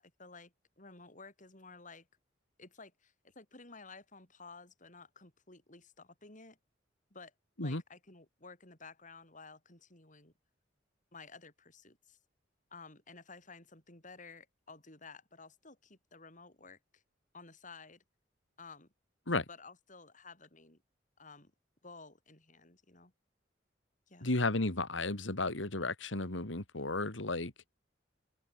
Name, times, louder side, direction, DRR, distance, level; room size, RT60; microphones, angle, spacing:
voice 1, 0.0-2.1 2.6-6.6 7.1-7.3 7.6-10.3 11.1-12.2 12.7-17.0 17.3-18.0 18.6-18.9 19.5-20.8 21.2-21.5 21.8-23.1 24.1-24.3, left 4 dB, 45° left, 7.9 m, -54 dB
voice 2, 24.2-27.5, left 2 dB, 85° left, 2.4 m, -33 dB
open air
head